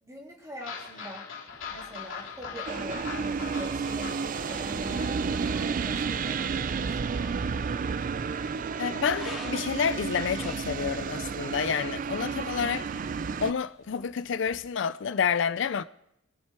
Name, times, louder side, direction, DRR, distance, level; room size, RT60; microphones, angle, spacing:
voice 1, 0.0-1.3 1.7-7.4, equal, 15° right, 3.3 m, -43 dB
sound 1, 0.6-11.3 11.7-11.8 12.2-12.3 12.6-12.7, left 6 dB, 85° left, 3.0 m, -44 dB
sound 2, 1.5-14.6, left 1 dB, ahead, 2.5 m, -52 dB
sound 3, 2.7-13.5, right 5 dB, 45° right, 0.4 m, -31 dB
voice 2, 8.8-12.9 13.4-15.8, left 7 dB, 70° left, 0.4 m, -29 dB
22.0 x 7.5 x 4.5 m
head